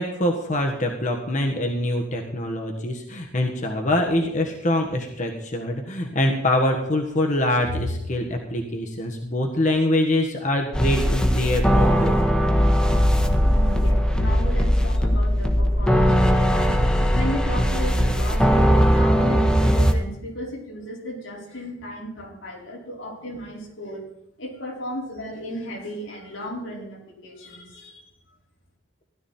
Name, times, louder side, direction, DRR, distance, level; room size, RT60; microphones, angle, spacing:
voice 1, 0.0-12.2 12.9-13.0, left 1 dB, 40° left, 2 dB, 1.5 m, -24 dB
sound 1, 10.7-19.9, equal, 5° left, 1.4 m, -19 dB
voice 2, 13.5-24.1 24.4-28.0 28.3-28.4, equal, 90° left, -2 dB, 4.9 m, -35 dB
16.5 x 12.0 x 4.4 m, 0.84 s
head